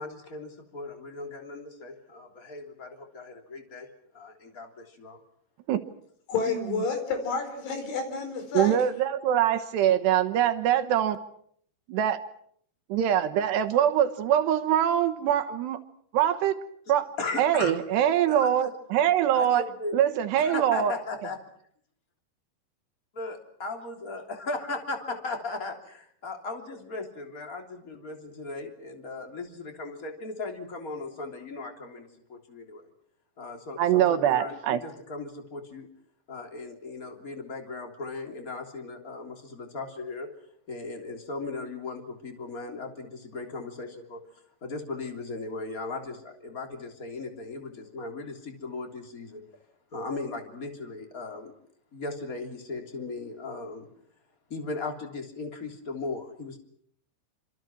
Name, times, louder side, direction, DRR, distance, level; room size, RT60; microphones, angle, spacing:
voice 1, 0.0-3.9 4.1-5.2 17.2-17.7 18.3-18.7 19.3-20.0 20.4-21.4 23.1-32.8 33.4-35.9 36.3-40.3 40.7-44.2 44.6-49.4 49.9-51.5 51.9-53.9 54.5-56.6, left 3 dB, 20° left, 4 dB, 3.0 m, -37 dB
voice 2, 6.3-8.9, left 4 dB, 85° left, 7 dB, 7.0 m, -30 dB
voice 3, 8.5-11.2 12.0-12.2 12.9-15.8 16.1-16.6 16.9-17.1 17.4-19.6 19.9-20.9 33.8-34.8, right 10 dB, 75° right, 9 dB, 3.2 m, -23 dB
27.5 x 26.5 x 6.1 m, 0.66 s
omnidirectional pair, 5.3 m